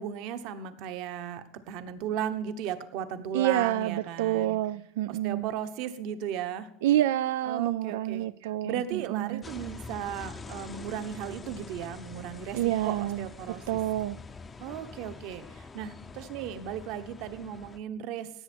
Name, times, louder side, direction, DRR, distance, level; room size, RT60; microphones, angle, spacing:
voice 1, 0.0-4.6 5.1-6.7 7.4-8.2 8.6-13.8 14.6-18.3, right 9 dB, 45° right, 1.1 m, -36 dB
voice 2, 3.3-5.5 6.8-9.4 12.5-13.2 13.7-14.2, right 13 dB, 90° right, 0.4 m, -28 dB
sound 1, 9.4-17.8, left 4 dB, 10° left, 0.6 m, -45 dB
17.0 x 8.2 x 4.4 m
cardioid pair, 175°, 0 cm